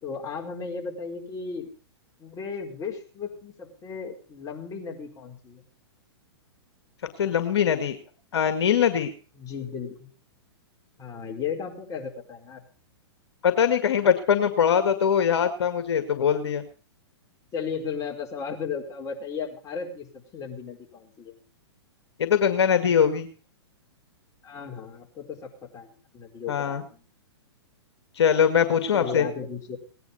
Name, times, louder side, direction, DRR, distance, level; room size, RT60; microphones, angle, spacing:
voice 1, 0.0-1.7 2.2-5.6 9.4-10.1 11.0-12.6 17.5-21.4 24.4-26.8 28.9-29.8, left 6 dB, 25° left, 0 dB, 4.9 m, -35 dB
voice 2, 7.2-8.0 8.3-9.1 13.4-16.6 22.2-23.3 26.5-26.8 28.2-29.3, left 8 dB, 70° left, 8 dB, 1.9 m, -22 dB
18.5 x 10.5 x 5.6 m, 0.39 s
hypercardioid pair, 120°, 14 cm